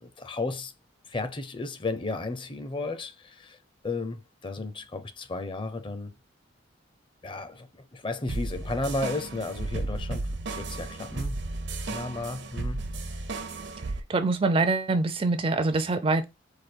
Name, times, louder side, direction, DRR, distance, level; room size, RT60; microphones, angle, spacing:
voice 1, 0.0-0.7 1.1-3.6 3.8-6.1 7.2-10.3 10.6-11.4 11.8-13.1, left 2 dB, 25° left, 0.6 m, -34 dB
sound 1, 8.3-14.0, right 2 dB, 65° right, 0.7 m, -34 dB
voice 2, 14.1-16.2, right 3 dB, 30° right, 0.4 m, -24 dB
4.9 x 2.4 x 4.4 m
head